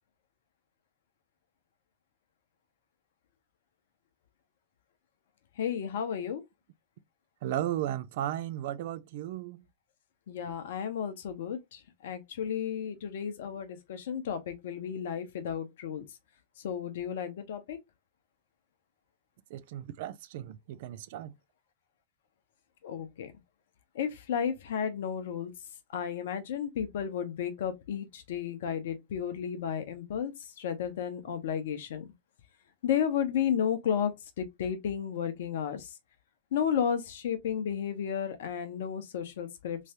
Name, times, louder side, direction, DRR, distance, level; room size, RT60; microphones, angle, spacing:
voice 1, 5.6-6.4 10.3-16.1 16.6-17.8 22.8-23.3 23.9-25.5 25.9-32.0 32.8-34.1 34.4-35.9 36.5-39.8, left 8 dB, 60° left, 0.8 m, -33 dB
voice 2, 7.4-9.6 19.5-21.3, right 12 dB, 50° right, 0.3 m, -35 dB
3.2 x 3.2 x 2.8 m
figure-of-eight pair, 90°, 0 cm